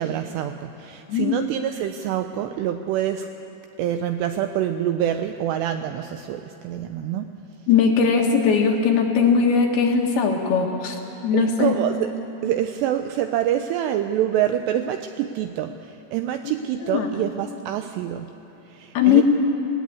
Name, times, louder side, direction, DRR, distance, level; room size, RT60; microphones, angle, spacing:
voice 1, 0.0-3.3 3.8-7.3 11.3-12.1 12.4-18.3 18.7-19.2, right 11 dB, 85° right, 8 dB, 2.4 m, -26 dB
voice 2, 7.7-11.8 16.4-16.5 16.8-17.1 18.9-19.2, left 6 dB, 65° left, 1 dB, 2.8 m, -19 dB
19.0 x 17.0 x 8.5 m, 3.0 s
omnidirectional pair, 5.4 m